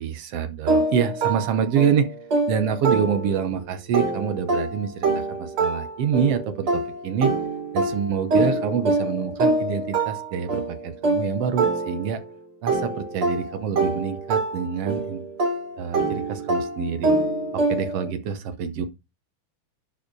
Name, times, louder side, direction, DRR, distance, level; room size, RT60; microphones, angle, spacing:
voice 1, 0.0-2.1 2.5-7.3 7.7-12.2 12.6-15.2 15.8-17.1 17.5-18.9, right 7 dB, 65° right, 1.7 m, -26 dB
sound 1, 0.7-3.5 3.9-12.3 12.7-18.1, right 3 dB, 45° right, 3.3 m, -25 dB
11.5 x 4.9 x 4.6 m
omnidirectional pair, 3.4 m